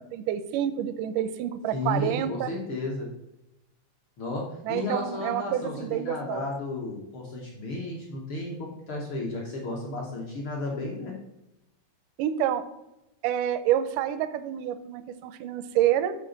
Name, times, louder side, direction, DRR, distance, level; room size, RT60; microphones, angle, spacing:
voice 1, 0.1-2.5 4.6-6.5 12.2-12.7 13.2-16.2, right 11 dB, 80° right, 12 dB, 1.9 m, -28 dB
voice 2, 1.7-3.1 4.2-11.1, left 2 dB, 80° left, -2 dB, 1.1 m, -33 dB
13.0 x 4.3 x 3.9 m, 0.92 s
omnidirectional pair, 4.1 m